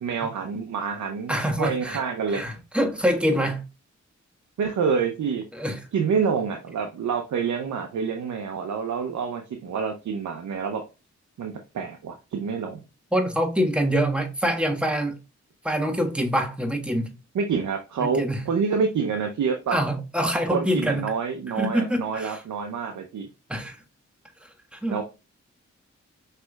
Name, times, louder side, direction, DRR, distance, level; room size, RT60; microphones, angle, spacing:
voice 1, 0.0-2.4 4.6-5.4 5.9-10.8 11.4-12.8 17.3-19.8 20.5-23.3 24.9-25.0, right 6 dB, 75° right, 0.7 m, -27 dB
voice 2, 1.3-2.0 2.3-3.6 5.5-5.8 13.1-15.1 15.6-17.1 18.0-18.4 19.7-21.0 21.6-22.4 23.5-23.8 24.7-25.0, equal, 5° right, 1.5 m, -25 dB
5.9 x 3.3 x 2.3 m
cardioid pair, 40°, 30 cm